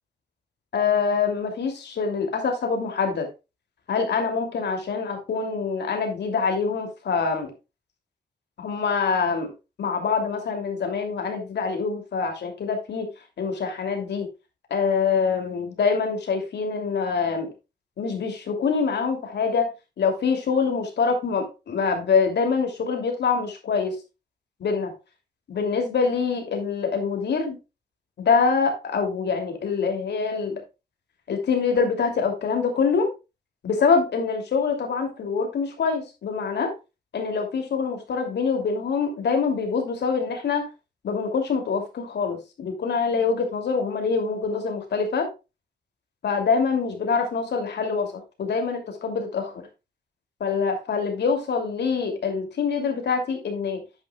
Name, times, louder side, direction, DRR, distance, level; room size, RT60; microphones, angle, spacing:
voice 1, 0.7-3.3 3.9-7.5 8.6-9.5 9.8-13.1 13.4-14.3 14.7-17.5 18.0-19.7 20.0-24.0 24.6-24.9 25.5-27.6 28.2-30.6 31.3-33.1 33.6-36.7 37.1-40.7 41.0-45.3 46.2-49.7 50.4-53.8, left 5 dB, 80° left, 4 dB, 3.0 m, -25 dB
10.5 x 8.8 x 2.4 m, 0.27 s
wide cardioid pair, 175°, 18 cm